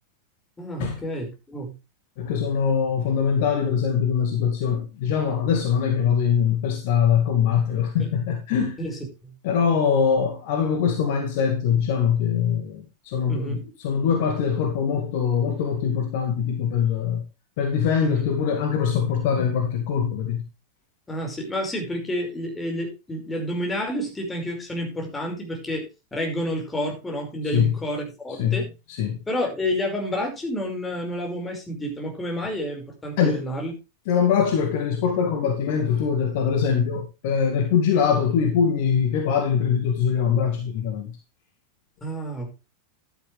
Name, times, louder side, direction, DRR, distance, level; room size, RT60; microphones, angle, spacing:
voice 1, 0.6-1.8 8.0-8.1 8.8-9.3 13.3-13.6 18.0-18.2 21.1-28.7 29.3-33.7 42.0-42.5, equal, 10° left, 5.3 m, -29 dB
voice 2, 2.2-8.8 9.4-17.2 17.6-20.4 27.5-27.7 28.4-28.6 29.0-29.2 33.2-33.4 34.1-41.2, left 7 dB, 50° left, 2.2 m, -23 dB
11.5 x 10.0 x 3.3 m
figure-of-eight pair, 90°, 0 cm